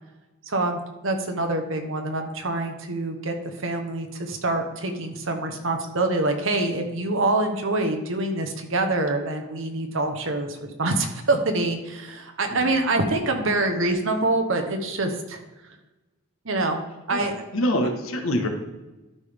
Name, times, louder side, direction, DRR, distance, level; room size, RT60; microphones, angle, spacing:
voice 1, 0.5-15.4 16.4-16.8 17.1-17.4, right 2 dB, 65° right, 4 dB, 1.1 m, -25 dB
voice 2, 17.1-18.5, left 1 dB, 75° left, 5 dB, 1.3 m, -25 dB
12.5 x 5.2 x 3.5 m, 1.1 s
head